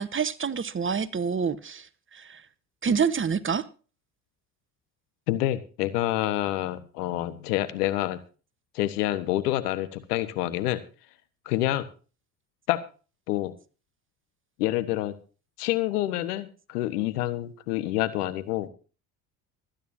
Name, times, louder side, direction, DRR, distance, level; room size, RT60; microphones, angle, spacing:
voice 1, 0.0-1.9 2.1-2.4 2.8-3.7, right 6 dB, 25° right, 1.2 m, -27 dB
voice 2, 5.3-8.2 8.7-10.8 11.4-11.9 12.7-12.8 13.3-13.5 14.6-15.1 15.6-18.7, left 15 dB, 80° left, 1.4 m, -27 dB
24.5 x 9.9 x 2.7 m
hypercardioid pair, 60°, 46 cm